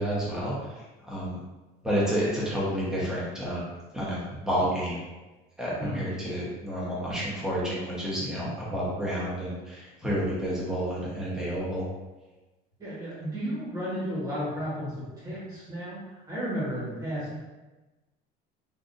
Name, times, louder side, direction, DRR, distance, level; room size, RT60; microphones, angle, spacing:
voice 1, 0.0-1.4 1.8-3.7 3.9-5.0 5.6-11.8, equal, 5° right, -7 dB, 0.8 m, -30 dB
voice 2, 12.8-16.0 16.3-17.4, equal, 20° right, -8 dB, 1.2 m, -33 dB
3.7 x 2.5 x 2.5 m, 1.1 s
cardioid pair, 175°, 19 cm